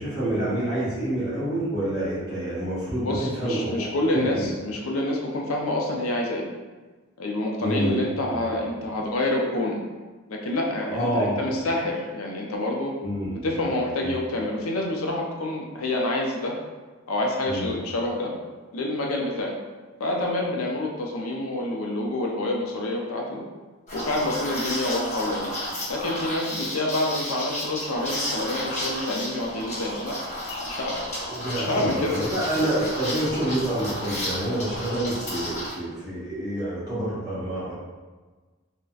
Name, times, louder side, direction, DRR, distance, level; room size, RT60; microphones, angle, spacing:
voice 1, 0.0-3.9 4.1-4.5 7.6-8.0 8.3-8.6 10.9-11.6 13.0-13.6 14.0-14.2 17.4-17.7 31.3-37.7, right 1 dB, 20° right, -11 dB, 1.3 m, -28 dB
voice 2, 3.0-6.4 7.2-9.8 10.3-12.9 13.4-16.5 17.1-18.3 18.7-19.5 20.0-23.4 23.9-25.6 25.9-30.2 30.5-31.0 31.6-32.2, left 1 dB, 75° left, 0 dB, 0.5 m, -27 dB
Liquid, 23.9-35.7, left 1 dB, 35° left, 0.8 m, -32 dB
3.9 x 2.1 x 2.3 m, 1.3 s
head